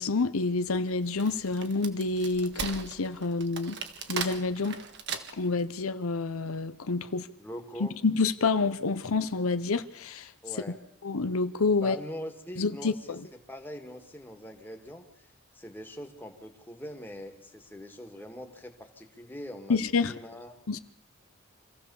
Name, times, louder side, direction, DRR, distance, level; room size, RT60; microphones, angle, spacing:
voice 1, 0.0-3.8 4.1-4.8 5.4-7.3 7.8-10.3 11.0-12.0 12.6-13.2 19.7-20.1 20.7-20.8, left 3 dB, 80° left, 0.8 m, -28 dB
Wood, 0.9-5.6, right 6 dB, 55° right, 1.7 m, -38 dB
voice 2, 7.4-8.0 10.4-10.8 11.8-20.5, equal, 10° left, 2.1 m, -43 dB
25.5 x 16.0 x 7.2 m
head